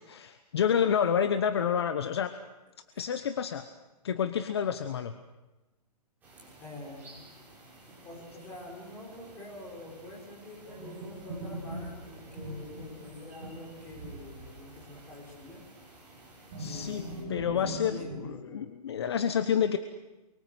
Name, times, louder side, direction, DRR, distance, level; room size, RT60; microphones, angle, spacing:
voice 1, 0.0-2.3 3.0-3.7 4.0-5.1 16.6-17.0 17.3-19.8, left 8 dB, 40° left, 9 dB, 1.2 m, -29 dB
sound 1, 6.2-17.2, right 1 dB, 10° right, 6.4 m, -54 dB
voice 2, 6.6-7.3 8.0-15.6 16.6-18.6, left 2 dB, 10° left, -2 dB, 5.7 m, -46 dB
sound 2, 10.7-15.0 15.3-15.4 16.5-18.2, right 1 dB, 35° right, 6.9 m, -41 dB
29.0 x 24.0 x 7.9 m, 1.1 s
hypercardioid pair, 180°, 21 cm